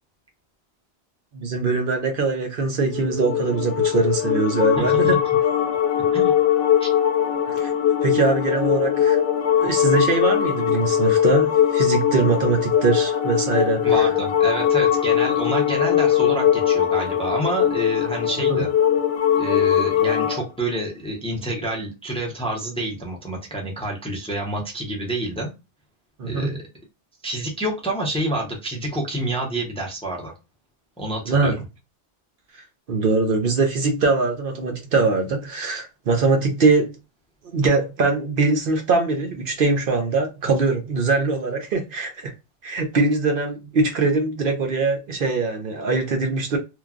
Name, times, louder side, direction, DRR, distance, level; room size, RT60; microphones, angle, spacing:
voice 1, 1.3-5.2 7.5-7.7 8.0-9.2 9.6-14.1 18.5-18.6 26.2-26.6 31.3-31.5 32.5-36.9 37.5-42.3 42.6-46.6, right 3 dB, 60° right, 0.7 m, -22 dB
sound 1, 2.8-20.4, left 9 dB, 75° left, 0.8 m, -20 dB
voice 2, 4.7-5.2 6.1-6.3 6.8-6.9 13.8-18.7 19.3-25.5 26.2-26.6 27.2-30.3 31.0-31.5, right 1 dB, 5° left, 0.6 m, -28 dB
3.1 x 2.2 x 2.4 m
omnidirectional pair, 1.1 m